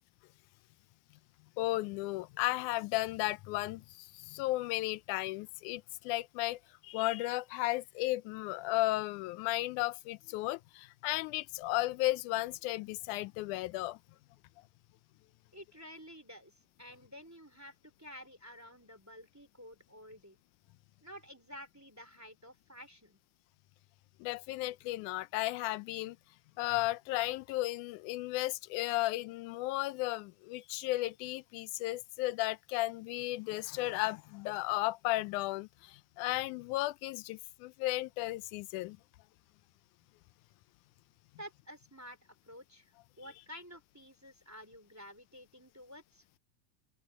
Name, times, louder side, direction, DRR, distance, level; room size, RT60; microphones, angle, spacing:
voice 1, 1.6-14.0 24.2-26.2 26.6-39.0, left 18 dB, 90° left, 2.1 m, -34 dB
voice 2, 15.5-20.4 21.0-23.2 41.4-42.2 42.5-46.2, equal, 5° right, 3.3 m, -51 dB
open air
omnidirectional pair, 3.4 m